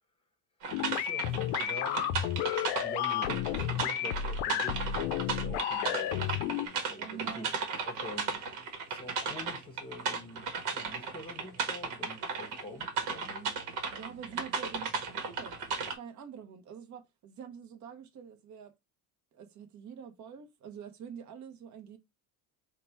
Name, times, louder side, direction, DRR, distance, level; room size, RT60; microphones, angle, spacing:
sound 1, 0.6-15.9, right 5 dB, 65° right, 1.3 m, -35 dB
sound 2, 0.7-6.7, left 11 dB, 70° left, 0.6 m, -32 dB
voice 1, 0.9-2.5 2.8-7.5 7.9-8.4 8.9-13.6, left 1 dB, 10° left, 1.0 m, -46 dB
voice 2, 7.0-7.5 13.9-18.7 19.3-22.0, right 8 dB, 40° right, 0.9 m, -46 dB
3.8 x 2.3 x 4.4 m
supercardioid pair, 110°, 44 cm